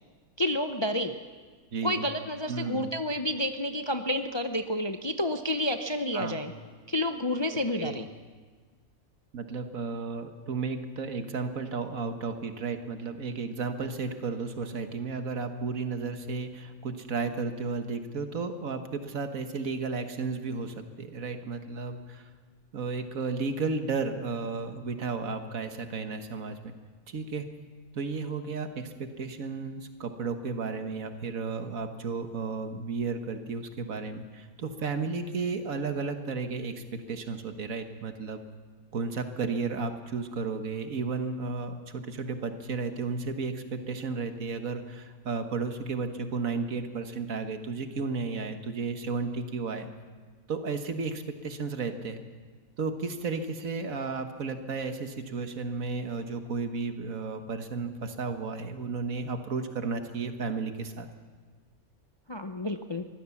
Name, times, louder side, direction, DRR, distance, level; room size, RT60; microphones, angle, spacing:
voice 1, 0.4-1.2 1.8-6.5 6.9-8.1 62.3-63.0, left 1 dB, 30° left, 7 dB, 0.5 m, -30 dB
voice 2, 1.7-2.0 2.5-2.9 6.1-6.4 7.8-8.0 9.3-22.3 22.7-26.7 27.1-27.5 27.9-38.4 38.9-49.9 50.5-52.2 52.8-61.1, right 4 dB, 70° right, 7 dB, 1.8 m, -33 dB
23.5 x 15.5 x 7.2 m, 1.5 s
omnidirectional pair, 1.5 m